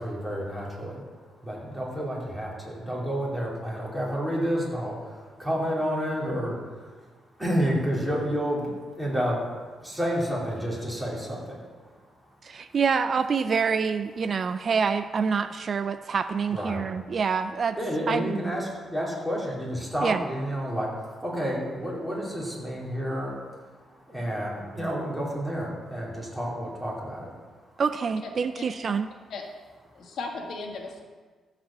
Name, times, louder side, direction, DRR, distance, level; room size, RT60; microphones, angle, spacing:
voice 1, 0.0-7.1 7.4-12.6 16.5-17.2 17.8-27.8 30.0-30.1, equal, 5° right, -5 dB, 3.8 m, -30 dB
voice 2, 12.4-17.8 18.1-18.4 20.0-20.2 27.8-29.1, right 5 dB, 45° right, 10 dB, 0.4 m, -26 dB
voice 3, 29.9-31.0, left 3 dB, 65° left, 2 dB, 1.6 m, -36 dB
14.5 x 4.9 x 7.5 m, 1.4 s
cardioid pair, 110°, 0 cm